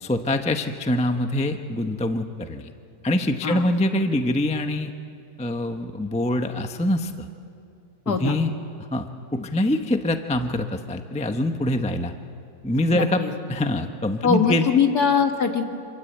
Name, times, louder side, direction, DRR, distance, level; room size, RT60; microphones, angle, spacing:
voice 1, 0.0-2.7 3.0-4.9 5.4-7.3 8.1-8.5 8.9-12.1 12.6-13.2 13.5-14.7, left 1 dB, 5° left, 6 dB, 0.5 m, -24 dB
voice 2, 8.1-8.4 12.9-13.3 14.2-15.6, left 6 dB, 55° left, 4 dB, 2.3 m, -21 dB
26.5 x 26.0 x 8.0 m, 2.6 s
omnidirectional pair, 2.0 m